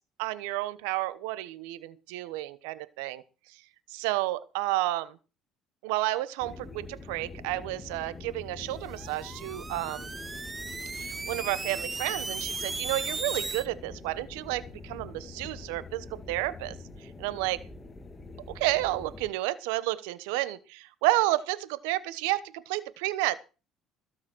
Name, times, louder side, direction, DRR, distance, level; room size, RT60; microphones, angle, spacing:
voice 1, 0.2-3.2 3.9-5.2 5.8-10.1 10.9-16.7 17.2-17.6 18.5-23.4, right 17 dB, 90° right, 16 dB, 1.1 m, -31 dB
sound 1, 6.4-19.3, left 3 dB, 20° left, 2.3 m, -45 dB
sound 2, 8.8-13.7, right 3 dB, 20° right, 0.8 m, -36 dB
16.0 x 7.3 x 6.2 m, 0.33 s
supercardioid pair, 90°, 0 cm